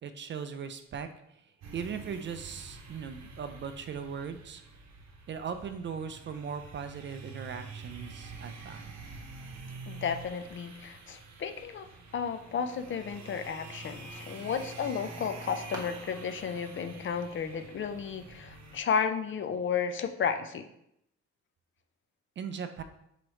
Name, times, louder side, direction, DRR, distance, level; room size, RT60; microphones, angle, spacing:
voice 1, 0.0-1.1 1.7-4.6 5.3-8.9 22.4-22.8, right 6 dB, 40° right, 9 dB, 0.4 m, -38 dB
sound 1, 1.6-18.8, right 3 dB, 60° right, 0.8 m, -47 dB
voice 2, 9.9-11.9 12.1-20.6, left 6 dB, 40° left, 8 dB, 0.4 m, -33 dB
sound 2, 14.8-19.9, equal, 10° right, 1.2 m, -52 dB
4.8 x 3.1 x 3.0 m, 0.78 s
cardioid pair, 90°, 30 cm